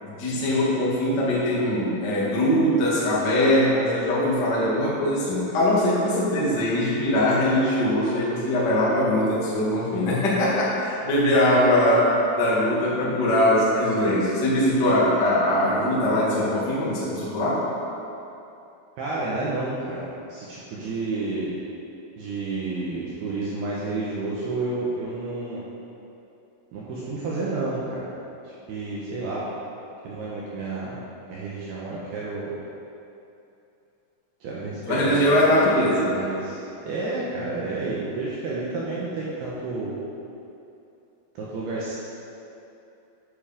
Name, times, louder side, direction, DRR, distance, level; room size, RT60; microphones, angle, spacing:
voice 1, 0.0-17.6 34.9-36.1 37.3-37.4, left 1 dB, 65° left, -7 dB, 1.0 m, -21 dB
voice 2, 19.0-21.5 22.2-25.6 26.7-28.1 28.4-29.5 30.0-32.5 34.4-35.2 35.5-35.6 36.1-40.0 41.4-41.9, right 3 dB, 75° right, -6 dB, 2.4 m, -30 dB
10.0 x 7.2 x 5.2 m, 2.8 s
omnidirectional pair, 5.9 m